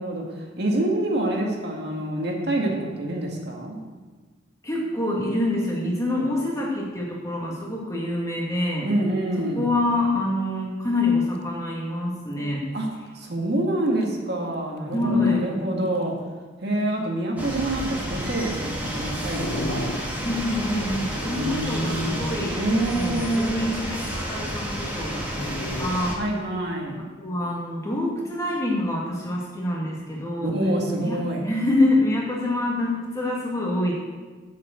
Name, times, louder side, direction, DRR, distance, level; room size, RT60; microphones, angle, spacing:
voice 1, 0.0-2.7 3.0-3.8 8.8-9.7 12.7-12.9 13.1-16.1 16.6-19.9 21.2-23.7 26.2-27.0 30.4-31.5, right 1 dB, 55° right, 0 dB, 1.8 m, -26 dB
voice 2, 4.6-8.9 9.6-12.6 14.9-15.4 19.1-19.2 20.2-22.6 22.9-26.2 27.0-30.6 31.0-33.9, left 2 dB, 15° left, -3 dB, 1.8 m, -26 dB
Dog, 11.9-12.0 12.3-12.6 13.2-13.3 14.0-14.1 14.9-15.4 16.0-16.1 19.4-20.4 21.9-22.4 25.3-25.9, left 1 dB, 55° left, 0.6 m, -33 dB
sound 1, 17.4-26.2, equal, 10° right, 1.6 m, -31 dB
7.6 x 7.5 x 7.7 m, 1.3 s
head